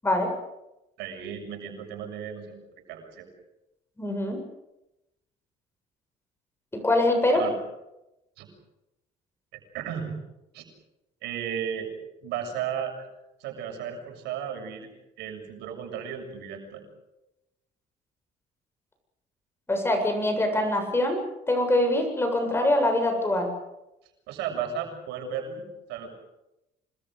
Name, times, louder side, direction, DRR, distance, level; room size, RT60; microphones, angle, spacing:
voice 1, 1.0-2.6 2.9-3.3 7.4-7.5 8.4-8.5 9.5-10.2 10.5-10.6 11.2-11.9 12.2-13.1 13.4-14.9 15.2-16.8 24.3-25.6 25.9-26.1, right 8 dB, 90° right, 3 dB, 6.9 m, -34 dB
voice 2, 4.0-4.4 6.7-7.4 19.7-21.2 21.5-23.5, left 1 dB, 15° left, 4 dB, 7.7 m, -24 dB
27.0 x 20.5 x 7.8 m, 0.92 s
cardioid pair, 110°, 17 cm